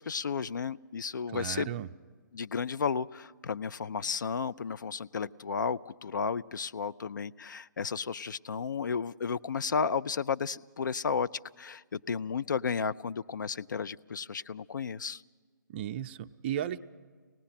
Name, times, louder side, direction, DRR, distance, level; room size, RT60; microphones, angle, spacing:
voice 1, 0.0-1.7 2.3-11.3 11.6-15.2, left 6 dB, 70° left, 15 dB, 0.5 m, -33 dB
voice 2, 1.3-1.9 15.7-16.8, right 10 dB, 35° right, 10 dB, 0.6 m, -35 dB
25.0 x 18.5 x 5.8 m, 1.6 s
figure-of-eight pair, 140°, 11 cm